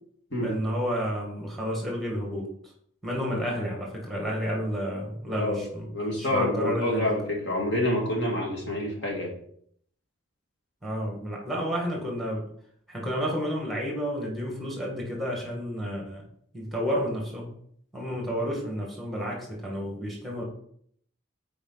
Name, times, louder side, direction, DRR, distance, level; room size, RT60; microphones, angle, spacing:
voice 1, 0.4-2.5 3.0-5.9 6.2-7.1 10.8-12.4 12.9-16.2 16.5-17.5 17.9-20.4, equal, ahead, -2 dB, 1.8 m, -31 dB
voice 2, 5.9-9.3, left 1 dB, 55° left, -1 dB, 2.2 m, -27 dB
8.7 x 4.8 x 4.1 m, 0.65 s
head